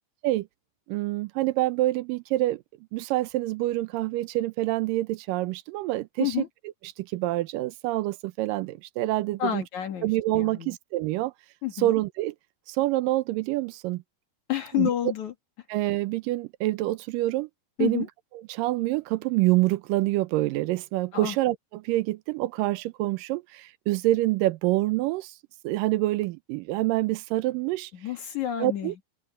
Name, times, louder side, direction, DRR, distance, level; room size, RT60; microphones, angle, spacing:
voice 1, 0.9-2.6 2.9-6.5 7.0-9.6 10.0-11.3 11.8-12.4 12.7-14.0 14.8-14.9 15.7-17.5 17.8-18.1 18.3-25.3 25.6-27.9 28.6-28.9, right 17 dB, 85° right, 2.4 m, -26 dB
voice 2, 9.4-10.1 10.4-10.8 11.6-11.9 14.5-15.3 17.8-18.1 21.1-21.4 27.9-28.9, left 12 dB, 60° left, 3.0 m, -29 dB
omnidirectional pair, 3.9 m